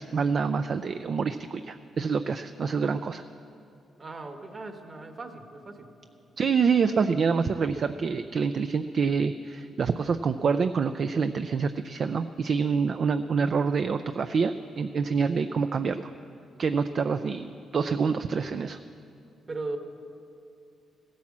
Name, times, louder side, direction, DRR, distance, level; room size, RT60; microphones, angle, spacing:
voice 1, 0.0-3.2 6.4-16.1 16.6-18.8, right 5 dB, 50° right, 9 dB, 0.4 m, -26 dB
voice 2, 4.0-5.9 19.5-19.8, right 3 dB, 30° right, 6 dB, 1.3 m, -38 dB
16.0 x 10.5 x 7.3 m, 2.6 s
cardioid pair, 115°, 0 cm